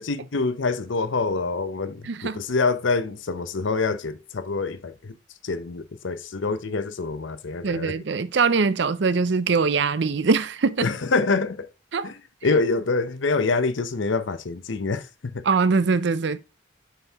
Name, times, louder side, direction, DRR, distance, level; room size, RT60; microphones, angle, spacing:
voice 1, 0.0-5.1 5.4-8.0 10.8-11.7 12.0-15.0 15.3-15.4, left 3 dB, 70° left, 0.7 m, -26 dB
voice 2, 2.0-2.4 7.6-10.9 11.9-12.1 15.4-16.4, right 4 dB, 60° right, 0.5 m, -22 dB
6.9 x 4.5 x 3.4 m
head